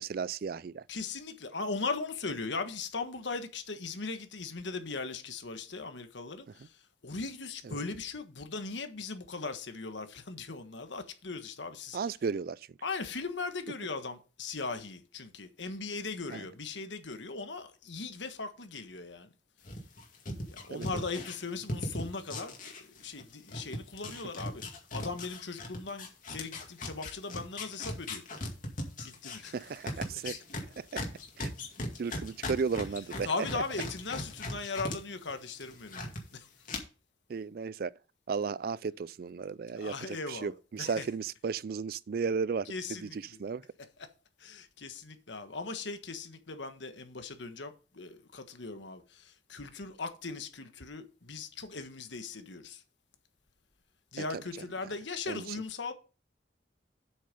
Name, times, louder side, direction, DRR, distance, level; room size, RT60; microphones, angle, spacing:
voice 1, 0.0-0.8 7.6-7.8 11.9-12.8 16.3-16.4 20.7-20.9 29.5-30.4 30.8-31.0 31.4-31.5 32.0-33.6 37.3-37.9 38.3-43.6 54.2-54.4 55.3-55.6, right 5 dB, 50° right, 0.3 m, -35 dB
voice 2, 0.9-12.0 12.8-19.3 20.4-22.6 22.9-24.6 24.9-28.2 29.0-29.5 33.2-36.5 39.8-41.0 42.7-43.2 44.0-44.1 44.4-52.8 54.1-55.9, left 4 dB, 75° left, 1.4 m, -39 dB
sound 1, 19.6-23.2 23.5-35.0 35.3-36.2 36.7-36.8, left 1 dB, 45° left, 2.2 m, -38 dB
8.0 x 6.4 x 5.3 m
head